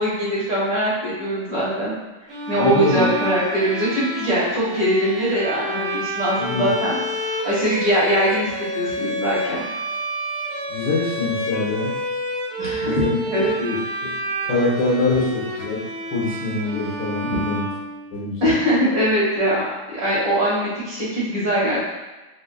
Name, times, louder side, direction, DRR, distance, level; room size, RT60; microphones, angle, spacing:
voice 1, 0.0-1.9 2.5-7.0 7.3-9.6 12.6-13.5 18.4-19.6 19.9-21.8, equal, 45° right, -9 dB, 2.0 m, -22 dB
Bowed string instrument, 2.3-18.4, equal, 70° right, 1.5 m, -29 dB
voice 2, 2.6-3.0 6.4-6.7 10.7-12.0 12.8-13.1 13.6-14.1 14.5-15.8 16.1-17.7 18.1-18.5, left 3 dB, 90° left, -6 dB, 2.0 m, -24 dB
4.8 x 2.5 x 2.3 m, 1.1 s
omnidirectional pair, 2.3 m